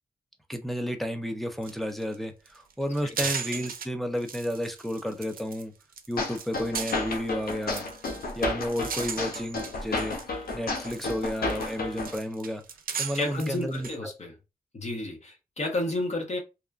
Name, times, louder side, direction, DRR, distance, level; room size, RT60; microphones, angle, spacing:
voice 1, 0.5-5.7 6.1-7.8 8.4-10.2 10.5-12.6 13.0-14.1, equal, ahead, 0.6 m, -32 dB
sound 1, 1.6-1.7 2.0-2.2 2.5-3.8 4.2-5.6 5.9-10.2 10.6-14.0, right 6 dB, 75° right, 0.5 m, -37 dB
sound 2, 6.2-12.2, left 3 dB, 85° left, 0.6 m, -32 dB
voice 2, 13.1-14.3 14.7-16.4, left 2 dB, 45° left, 0.9 m, -31 dB
2.9 x 2.2 x 2.4 m
cardioid pair, 60°, 15 cm